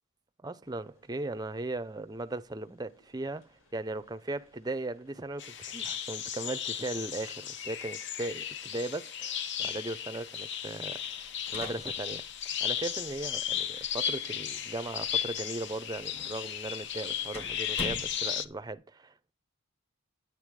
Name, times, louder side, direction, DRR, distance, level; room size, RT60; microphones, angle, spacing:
voice 1, 0.4-12.3 12.6-19.3, right 2 dB, 20° right, 0.5 m, -38 dB
sound 1, 0.6-18.4, left 1 dB, 80° left, 5.1 m, -65 dB
sound 2, 5.4-18.5, left 9 dB, 55° left, 0.8 m, -35 dB
sound 3, 10.9-18.7, left 1 dB, 30° left, 2.4 m, -47 dB
9.7 x 9.0 x 4.7 m
head